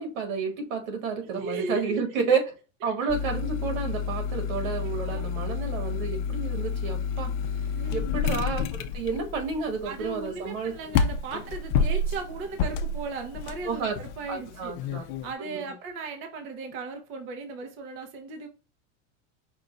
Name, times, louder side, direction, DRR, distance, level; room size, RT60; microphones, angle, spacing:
voice 1, 0.0-2.6 2.8-7.3 7.9-10.7 13.7-14.0 14.3-15.0 15.5-15.6, right 5 dB, 80° right, 1.9 m, -30 dB
voice 2, 1.3-2.0 3.0-3.1 4.6-4.7 5.0-5.2 7.7-8.1 9.8-14.7 15.0-18.5, right 3 dB, 30° right, 0.6 m, -37 dB
sound 1, 3.1-15.3, left 5 dB, 55° left, 0.6 m, -30 dB
5.2 x 2.2 x 3.8 m
supercardioid pair, 155°, 40 cm